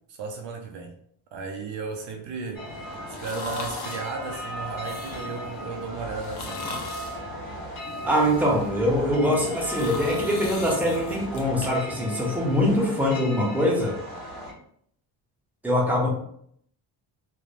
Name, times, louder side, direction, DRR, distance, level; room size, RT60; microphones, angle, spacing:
voice 1, 0.1-0.9 1.3-2.8 3.1-6.7, right 4 dB, 65° right, 2 dB, 0.5 m, -35 dB
sound 1, 2.5-14.5, equal, 30° left, 1.0 m, -36 dB
sound 2, 3.1-4.1 4.7-5.4 6.1-7.2 7.8-8.7 9.3-11.7 12.1-12.2, left 4 dB, 60° left, 0.6 m, -39 dB
voice 2, 8.0-13.9 15.6-16.1, left 1 dB, 5° right, -3 dB, 0.5 m, -23 dB
3.2 x 2.0 x 2.4 m, 0.68 s
cardioid pair, 155°, 46 cm